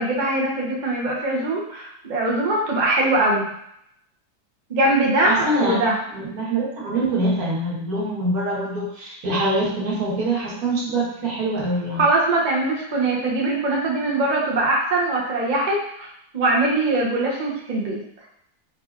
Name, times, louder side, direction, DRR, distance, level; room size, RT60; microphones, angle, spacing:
voice 1, 0.0-3.5 4.7-6.0 12.0-16.1 16.3-18.0, right 2 dB, 40° right, -3 dB, 0.6 m, -22 dB
voice 2, 5.3-5.8 6.1-12.0, right 2 dB, 65° right, -6 dB, 1.6 m, -24 dB
4.7 x 2.8 x 2.4 m, 0.72 s
omnidirectional pair, 1.7 m